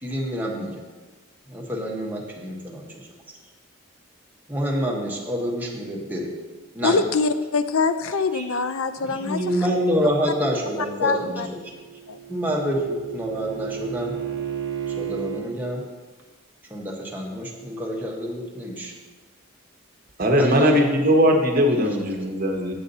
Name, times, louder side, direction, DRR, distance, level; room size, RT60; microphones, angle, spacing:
voice 1, 0.0-0.7 1.5-3.1 4.5-6.3 6.7-7.0 8.3-8.4 9.0-11.6 12.3-14.1 14.9-15.8 16.7-18.9 20.4-20.9, equal, 10° right, -2 dB, 1.1 m, -27 dB
voice 2, 6.8-9.4 11.0-11.5 12.1-12.2, left 4 dB, 75° left, 11 dB, 0.5 m, -24 dB
Bowed string instrument, 11.5-15.5, right 9 dB, 70° right, 0.9 m, -33 dB
voice 3, 20.2-22.7, equal, 40° right, 2 dB, 1.0 m, -19 dB
8.0 x 7.2 x 4.1 m, 1.3 s
head